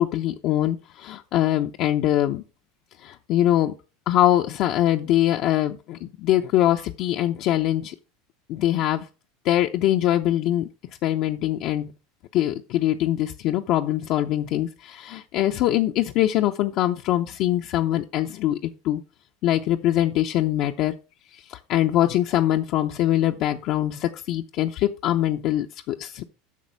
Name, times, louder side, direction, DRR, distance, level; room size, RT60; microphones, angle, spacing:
voice 1, 0.0-2.4 3.0-3.7 4.1-7.9 8.5-9.1 9.4-10.7 11.0-11.9 12.3-19.0 19.4-20.9 21.3-26.2, left 13 dB, 55° left, 3 dB, 0.6 m, -23 dB
8.4 x 5.9 x 4.6 m, 0.32 s
supercardioid pair, 115°, 0 cm